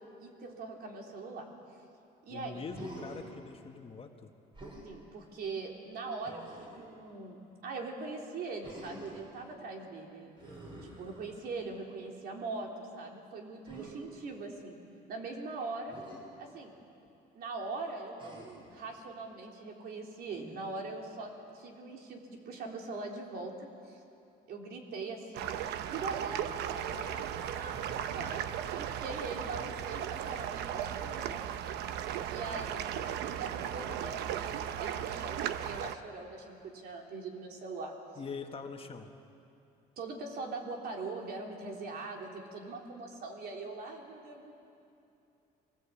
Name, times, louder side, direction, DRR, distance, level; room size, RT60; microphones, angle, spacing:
voice 1, 0.2-1.5 2.2-2.6 4.8-7.4 7.6-10.3 10.8-14.8 15.1-16.0 16.4-16.8 17.4-24.0 24.5-25.5 25.9-28.4 28.8-31.4 32.3-38.0 40.0-44.5, right 3 dB, 65° right, 1 dB, 3.5 m, -41 dB
voice 2, 2.3-4.3 38.2-39.1, left 5 dB, 35° left, 4 dB, 1.7 m, -43 dB
Human voice, 2.7-3.3 4.5-4.9 6.2-6.9 8.6-9.3 10.4-11.6 13.7-13.9 15.9-16.2 18.2-18.7 20.3-20.8, right 1 dB, 30° right, 6.4 m, -48 dB
sound 1, 25.3-36.0, right 10 dB, 80° right, 0.9 m, -36 dB
23.5 x 18.5 x 8.6 m, 2.7 s
cardioid pair, 110°, 17 cm